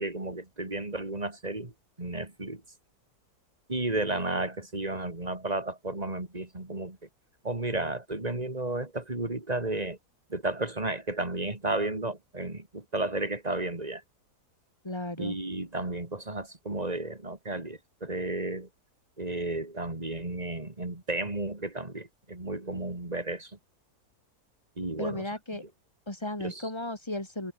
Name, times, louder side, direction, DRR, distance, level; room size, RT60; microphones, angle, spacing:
voice 1, 0.0-1.7 2.0-2.6 3.7-7.0 7.4-10.0 10.3-14.0 15.2-18.7 19.2-23.6 24.8-25.2 26.4-26.7, right 2 dB, 25° right, 3.6 m, -33 dB
voice 2, 14.8-15.4 25.0-25.6 26.1-27.5, left 1 dB, 15° left, 3.1 m, -35 dB
omnidirectional pair, 1.7 m